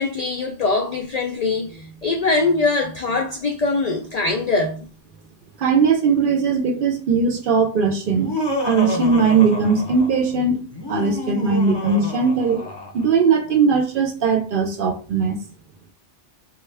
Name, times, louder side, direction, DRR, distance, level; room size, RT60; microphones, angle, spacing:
voice 1, 0.0-4.9, left 3 dB, 70° left, 0.3 m, -22 dB
voice 2, 5.6-8.3 8.6-10.6 10.9-12.6 12.9-15.4, right 5 dB, 60° right, 0.6 m, -19 dB
Laughter, 8.1-10.2 10.7-13.1, left 2 dB, 25° left, 0.6 m, -29 dB
3.6 x 2.2 x 3.3 m
omnidirectional pair, 1.2 m